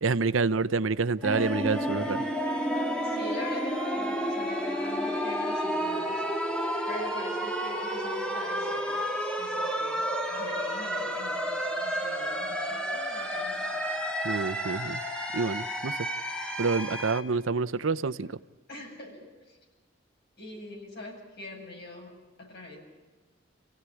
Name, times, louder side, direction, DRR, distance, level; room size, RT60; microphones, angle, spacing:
voice 1, 0.0-2.2 14.2-15.0 15.3-15.9 16.6-18.4, right 4 dB, 85° right, 14 dB, 0.7 m, -28 dB
sound 1, 1.2-17.2, equal, 5° left, 2.1 m, -31 dB
voice 2, 3.0-6.2 6.9-9.0 9.4-13.8 18.7-19.6 20.4-22.8, left 2 dB, 60° left, 1 dB, 7.4 m, -44 dB
28.5 x 16.5 x 9.9 m, 1.3 s
head